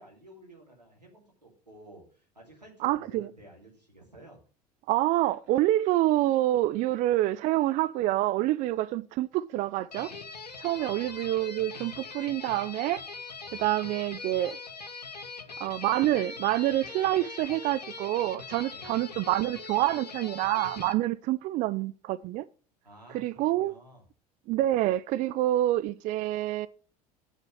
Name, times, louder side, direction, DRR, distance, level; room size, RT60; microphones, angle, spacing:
voice 1, 0.0-4.4 10.8-11.1 13.4-13.7 18.7-18.9 22.8-24.0, right 1 dB, 90° right, 2.9 m, -52 dB
voice 2, 2.8-3.3 4.9-10.1 10.6-13.0 13.5-14.6 15.6-22.5 23.1-23.7 24.5-26.7, right 15 dB, 40° right, 0.4 m, -27 dB
sound 1, 9.9-20.9, left 4 dB, 85° left, 0.9 m, -42 dB
9.0 x 6.7 x 6.3 m
figure-of-eight pair, 70°, 20 cm